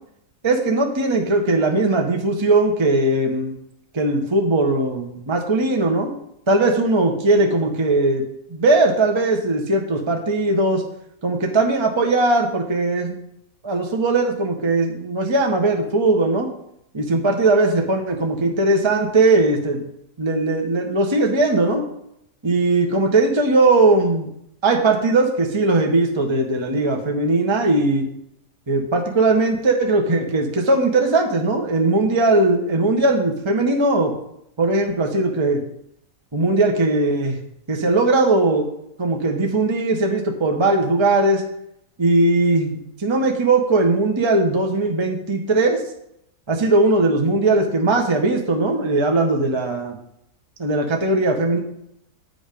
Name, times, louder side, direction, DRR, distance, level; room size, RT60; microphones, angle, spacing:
voice 1, 0.4-3.5 3.9-6.1 6.5-8.2 8.5-10.8 11.2-13.1 13.6-16.5 16.9-19.8 20.2-21.8 22.4-24.3 24.6-28.0 28.7-34.1 34.6-35.6 36.3-37.4 37.7-38.7 39.0-41.4 42.0-45.8 46.5-50.0 50.6-51.6, right 2 dB, 20° right, 2 dB, 1.1 m, -19 dB
9.8 x 7.6 x 5.2 m, 0.75 s
omnidirectional pair, 1.7 m